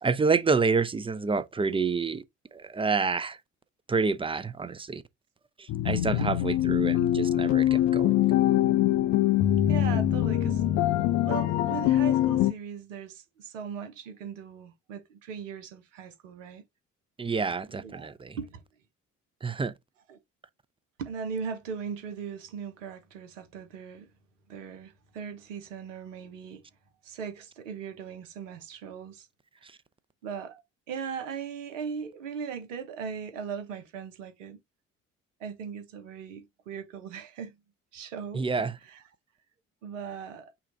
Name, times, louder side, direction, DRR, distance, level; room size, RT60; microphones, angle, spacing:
voice 1, 0.0-2.2 2.5-3.4 3.9-5.0 5.8-8.1 17.2-18.4 19.4-19.7 38.3-38.7, right 4 dB, 15° right, 0.6 m, -28 dB
sound 1, 5.7-12.5, left 12 dB, 50° left, 0.6 m, -23 dB
voice 2, 9.7-10.6 11.2-16.6 17.7-18.6 20.1-20.2 21.0-24.1 24.5-26.6 27.0-29.3 29.6-29.7 30.2-30.6 30.9-34.6 35.4-37.5 37.9-38.5 38.8-39.1 39.8-40.5, right 6 dB, 75° right, 1.1 m, -39 dB
5.7 x 2.4 x 4.0 m
figure-of-eight pair, 50°, 38 cm